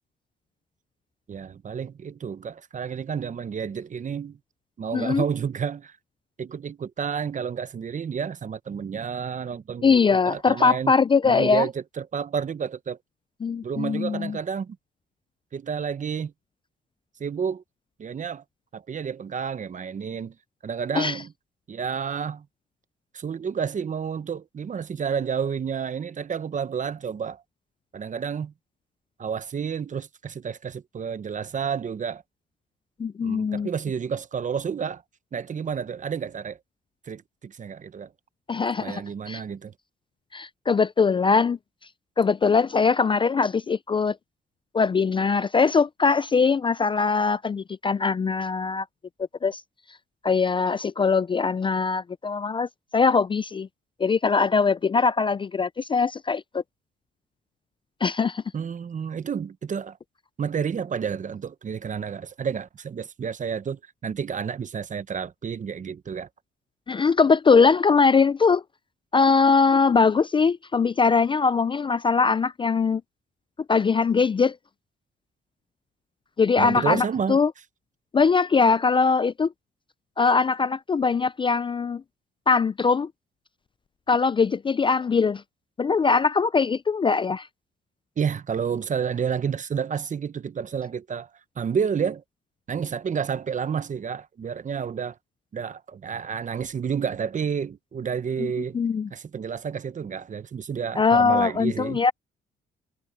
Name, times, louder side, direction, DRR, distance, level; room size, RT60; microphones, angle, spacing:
voice 1, 1.3-4.4 4.8-5.9 6.4-10.9 11.2-13.0 13.6-14.8 15.5-16.3 17.2-17.6 18.0-18.4 18.7-20.3 20.6-21.3 21.7-22.5 23.1-27.4 27.9-28.5 29.2-32.2 33.2-35.0 35.3-36.6 37.1-38.1 38.8-39.7 58.5-60.0 60.4-66.3 76.6-77.4 88.2-91.3 91.6-92.2 92.7-95.2 95.5-98.8 99.1-102.0, right 7 dB, 40° right, 0.9 m, -30 dB
voice 2, 4.9-5.2 9.8-11.7 13.4-14.4 20.9-21.2 33.0-33.7 38.5-39.4 40.3-41.6 42.2-44.2 44.7-48.9 49.4-49.6 50.2-53.7 54.0-56.6 58.0-58.4 66.9-68.6 69.1-73.0 73.7-74.6 76.4-77.5 78.1-79.5 80.2-82.0 82.5-83.1 84.1-85.4 85.8-87.5 98.4-98.5 98.7-99.1 101.0-102.1, left 5 dB, 25° left, 0.4 m, -21 dB
cardioid pair, 90°, 20 cm